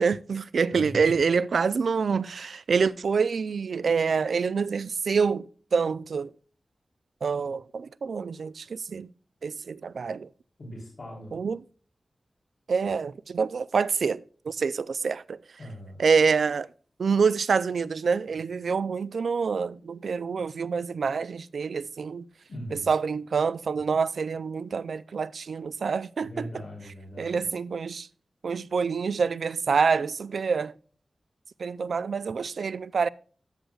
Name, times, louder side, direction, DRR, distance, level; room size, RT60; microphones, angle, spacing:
voice 1, 0.0-6.3 7.2-9.1 9.4-10.3 11.3-11.6 12.7-15.4 16.0-16.7 17.0-22.2 22.7-26.5 27.2-28.1 28.4-30.7 31.6-33.1, right 5 dB, 85° right, 0.3 m, -26 dB
voice 2, 0.7-1.2 10.6-11.4 15.6-16.0 22.5-22.9 26.2-27.4, equal, 50° left, 3.3 m, -40 dB
13.0 x 7.7 x 2.3 m
wide cardioid pair, 105°, 0 cm